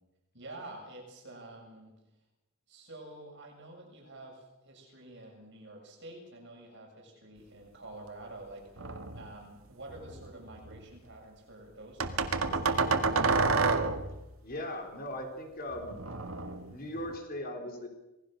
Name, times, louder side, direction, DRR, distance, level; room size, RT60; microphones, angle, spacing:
voice 1, 0.3-1.9 2.7-13.3, right 2 dB, 55° right, 0 dB, 7.2 m, -48 dB
sound 1, 8.8-9.4 9.9-10.8 12.0-14.2 15.7-17.2, right 4 dB, 70° right, 1.8 m, -30 dB
voice 2, 14.4-16.0 16.7-17.9, left 1 dB, 45° left, 4 dB, 3.9 m, -38 dB
27.0 x 19.5 x 6.7 m, 0.98 s
head